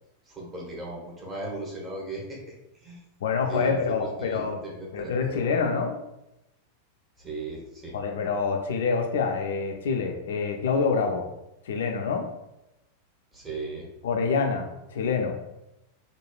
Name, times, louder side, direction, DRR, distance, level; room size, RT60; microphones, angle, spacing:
voice 1, 0.3-2.4 2.7-3.0 3.5-5.5 7.2-7.9 13.3-13.9, right 2 dB, 20° right, -3 dB, 0.9 m, -37 dB
voice 2, 3.2-4.6 4.9-6.0 7.9-11.3 11.6-12.3 14.0-15.3, left 5 dB, 60° left, 3 dB, 0.3 m, -26 dB
3.2 x 2.2 x 2.3 m, 0.89 s
figure-of-eight pair, 90°, 0 cm